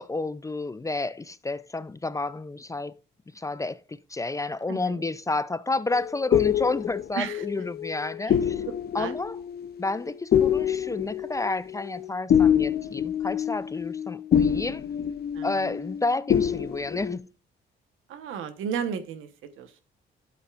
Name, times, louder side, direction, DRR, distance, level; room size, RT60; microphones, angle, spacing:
voice 1, 0.0-3.0 3.3-8.6 8.9-9.4 9.8-14.8 15.4-17.3, left 3 dB, 15° left, 0.4 m, -30 dB
voice 2, 4.7-5.0 7.1-7.5 8.2-8.4 8.7-9.1 15.3-15.7 18.1-19.8, right 7 dB, 90° right, 1.2 m, -34 dB
sound 1, 5.9-16.0 16.3-17.2, left 9 dB, 50° left, 0.7 m, -26 dB
11.5 x 8.0 x 2.5 m
cardioid pair, 90°, 20 cm